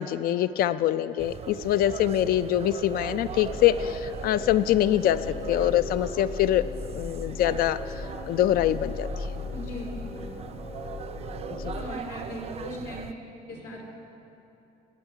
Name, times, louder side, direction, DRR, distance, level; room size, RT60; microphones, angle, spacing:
voice 1, 0.0-7.9 8.3-9.1 11.6-11.8, left 12 dB, 60° left, 14 dB, 0.4 m, -24 dB
sound 1, 1.2-13.1, right 8 dB, 40° right, 0.4 m, -40 dB
sound 2, 3.3-11.9, left 4 dB, 35° left, 0.8 m, -38 dB
voice 2, 9.5-9.9 11.7-13.2 13.5-13.9, left 1 dB, 80° left, -3 dB, 3.4 m, -38 dB
18.5 x 8.0 x 4.7 m, 2.9 s
cardioid pair, 110°, 17 cm